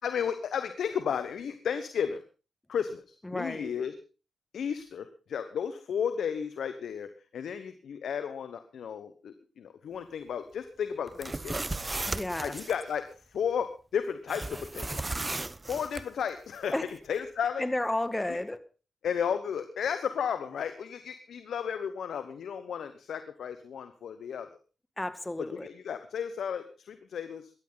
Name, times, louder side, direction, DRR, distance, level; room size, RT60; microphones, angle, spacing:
voice 1, 0.0-2.2 2.7-3.9 4.5-11.6 12.4-15.0 15.7-16.8 17.1-17.6 18.3-18.4 19.0-24.6 25.5-27.5, left 7 dB, 75° left, 1.1 m, -33 dB
voice 2, 3.2-3.7 12.1-12.6 16.7-16.9 17.6-18.6 25.0-25.7, left 1 dB, 15° left, 1.9 m, -32 dB
sound 1, 11.1-12.8 14.3-16.0, right 2 dB, 25° right, 0.9 m, -35 dB
17.5 x 13.5 x 4.0 m
supercardioid pair, 45°, 0 cm